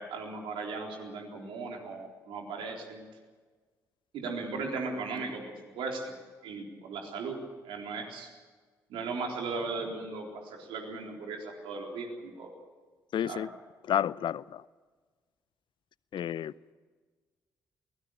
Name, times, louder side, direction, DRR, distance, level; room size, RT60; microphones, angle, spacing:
voice 1, 0.0-3.0 4.1-6.1 6.4-7.4 7.6-8.3 8.9-12.5 13.2-13.4, right 4 dB, 70° right, 3.9 m, -37 dB
voice 2, 13.1-13.5 13.8-14.6 16.1-16.5, left 10 dB, 60° left, 0.6 m, -30 dB
23.0 x 18.5 x 8.8 m
hypercardioid pair, 40°, 9 cm